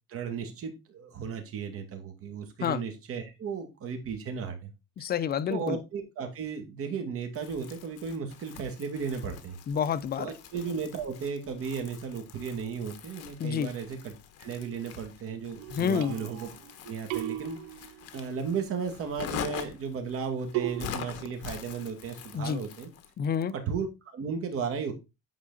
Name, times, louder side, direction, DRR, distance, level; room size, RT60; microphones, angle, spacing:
voice 1, 0.1-4.7 5.0-5.1 5.5-9.6 10.2-14.1 14.4-16.5 16.8-17.6 18.1-22.9 23.5-24.9, right 6 dB, 45° right, 2.4 m, -35 dB
voice 2, 5.0-5.8 9.7-10.3 13.4-13.7 15.7-16.2 22.3-22.6 23.2-23.5, left 8 dB, 30° left, 0.6 m, -28 dB
Crumpling crinkling, 7.3-23.1, left 9 dB, 50° left, 1.4 m, -44 dB
sound 1, 15.6-16.7 17.1-18.3 20.5-20.9, right 17 dB, 70° right, 0.5 m, -35 dB
9.4 x 4.8 x 4.0 m
cardioid pair, 130°, 32 cm